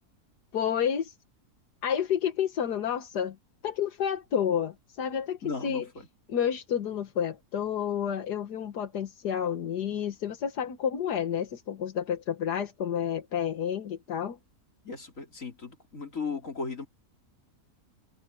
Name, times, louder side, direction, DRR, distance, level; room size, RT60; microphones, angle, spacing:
voice 1, 0.5-1.1 1.8-3.4 3.6-5.9 6.3-14.4, left 8 dB, 85° left, 1.8 m, -30 dB
voice 2, 5.4-6.1 14.8-16.9, left 4 dB, 55° left, 4.1 m, -36 dB
open air
omnidirectional pair, 1.7 m